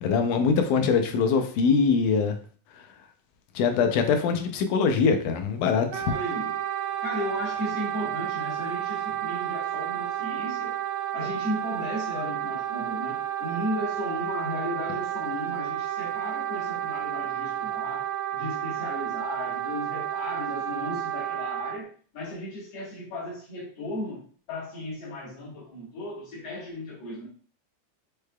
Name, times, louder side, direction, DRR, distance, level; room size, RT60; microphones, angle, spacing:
voice 1, 0.0-2.4 3.6-6.0, left 5 dB, 80° left, 2.1 m, -23 dB
Wind instrument woodwind instrument, 5.9-21.8, right 11 dB, 85° right, 2.1 m, -31 dB
voice 2, 6.0-6.6 7.0-10.7 11.1-27.3, left 1 dB, 60° left, 2.1 m, -35 dB
5.5 x 3.3 x 2.2 m
omnidirectional pair, 3.6 m